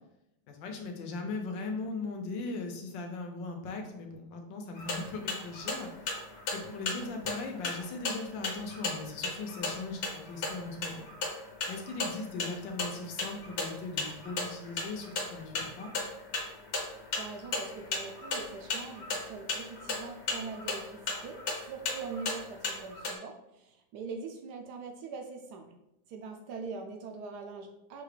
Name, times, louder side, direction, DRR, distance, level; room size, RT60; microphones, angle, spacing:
voice 1, 0.5-5.9 6.5-11.1 11.7-15.9, left 3 dB, 75° left, 3 dB, 1.4 m, -39 dB
sound 1, 4.8-23.1, left 3 dB, 55° left, 1.4 m, -36 dB
voice 2, 17.2-25.8 26.1-28.0, right 4 dB, 75° right, 4 dB, 0.9 m, -42 dB
6.4 x 2.4 x 3.3 m, 0.86 s
omnidirectional pair, 2.2 m